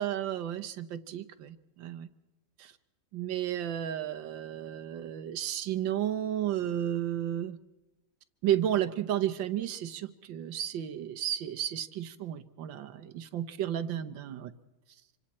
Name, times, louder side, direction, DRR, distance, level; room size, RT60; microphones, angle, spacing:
voice 1, 0.0-2.1 2.6-2.7 3.1-7.6 8.4-14.5, right 11 dB, 85° right, 10 dB, 1.7 m, -33 dB
27.0 x 25.0 x 4.3 m, 1.1 s
omnidirectional pair, 2.0 m